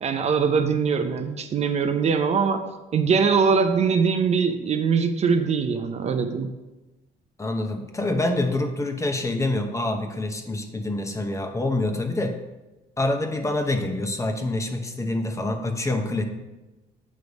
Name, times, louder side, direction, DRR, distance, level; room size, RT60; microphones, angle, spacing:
voice 1, 0.0-2.6 2.9-6.5, right 5 dB, 40° right, 7 dB, 0.5 m, -22 dB
voice 2, 7.4-12.4 13.0-16.2, left 2 dB, 15° left, 5 dB, 0.7 m, -26 dB
8.2 x 3.2 x 5.2 m, 1.1 s
cardioid pair, 110°, 17 cm